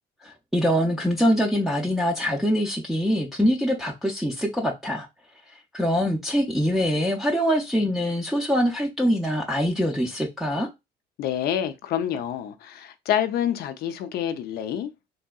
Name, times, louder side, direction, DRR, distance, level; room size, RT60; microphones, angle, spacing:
voice 1, 0.2-5.1 5.7-10.7, equal, ahead, 0.5 m, -24 dB
voice 2, 11.2-14.9, left 10 dB, 70° left, 0.5 m, -27 dB
3.3 x 2.7 x 2.2 m
cardioid pair, 110°, 17 cm